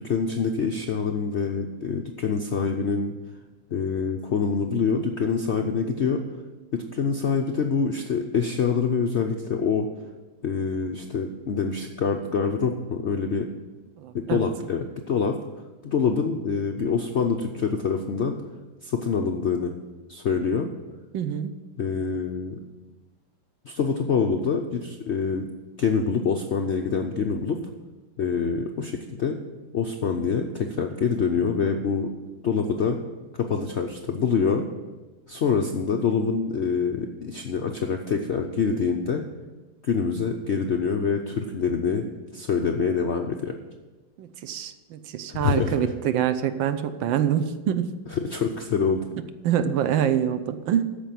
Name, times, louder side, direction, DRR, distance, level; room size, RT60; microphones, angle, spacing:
voice 1, 0.0-3.1 3.7-6.2 6.7-9.9 10.4-13.5 14.1-15.4 15.8-18.4 18.8-19.7 20.1-20.7 21.8-22.6 23.6-25.5 25.8-27.6 28.2-29.4 29.7-32.1 32.4-33.0 33.3-34.6 35.3-39.2 39.8-42.1 42.3-43.6 45.3-45.7 48.3-49.0, left 5 dB, 90° left, 3 dB, 0.6 m, -25 dB
voice 2, 14.0-14.5 21.1-21.5 44.2-47.9 49.4-50.8, right 9 dB, 75° right, 10 dB, 1.5 m, -25 dB
13.5 x 5.4 x 7.5 m, 1.2 s
omnidirectional pair, 2.2 m